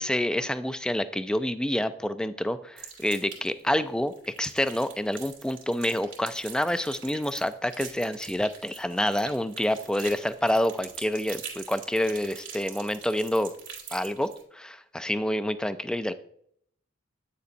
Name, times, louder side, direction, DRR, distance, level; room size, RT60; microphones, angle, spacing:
voice 1, 0.0-4.1 4.4-13.5 13.9-16.1, left 1 dB, 5° left, 11 dB, 0.3 m, -28 dB
sound 1, 2.8-3.6 4.1-14.4, right 7 dB, 75° right, 2.3 m, -44 dB
9.2 x 6.8 x 2.6 m, 0.67 s
head